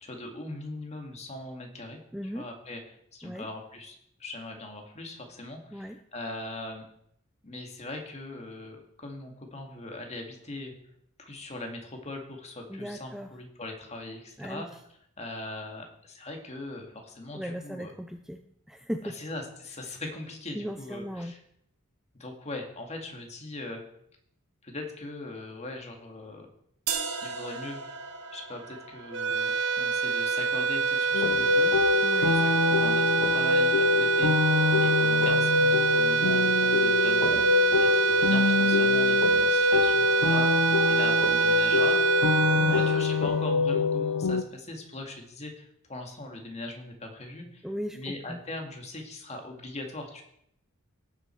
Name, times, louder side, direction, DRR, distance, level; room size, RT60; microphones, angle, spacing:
voice 1, 0.0-6.9 7.4-10.7 11.2-14.8 15.2-17.9 19.0-21.4 22.1-23.8 24.6-26.5 27.2-27.8 28.3-42.0 42.3-42.4 42.7-47.7 47.9-50.2, left 2 dB, 30° left, 3 dB, 2.1 m, -40 dB
voice 2, 2.1-2.4 3.2-3.5 5.7-6.0 12.7-13.3 14.4-14.6 17.3-18.4 18.7-19.2 20.5-21.3 32.0-32.3 42.5-42.8 47.6-48.4, equal, ahead, 7 dB, 0.4 m, -37 dB
sound 1, 26.9-32.8, right 6 dB, 90° right, 1.4 m, -39 dB
sound 2, 29.1-43.7, right 5 dB, 55° right, 0.6 m, -25 dB
sound 3, 31.1-44.4, left 5 dB, 85° left, 0.5 m, -25 dB
17.5 x 7.6 x 4.6 m, 0.73 s
head